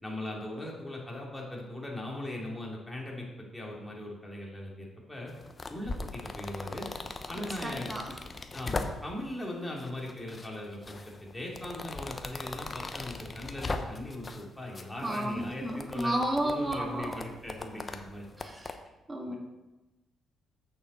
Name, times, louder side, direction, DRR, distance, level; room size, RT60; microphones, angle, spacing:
voice 1, 0.0-5.3 5.7-6.9 7.3-7.9 8.5-16.1 16.4-18.3 19.2-19.4, left 1 dB, 10° left, -3 dB, 2.6 m, -39 dB
sound 1, 5.3-9.3 9.8-10.5 10.8-14.4 14.7-18.7, left 3 dB, 30° left, 0.8 m, -39 dB
voice 2, 7.6-8.1 15.0-17.2 18.4-18.8 19.1-19.3, right 1 dB, 20° right, 1 dB, 1.7 m, -32 dB
8.2 x 6.9 x 4.3 m, 1.1 s
cardioid pair, 90°, 0 cm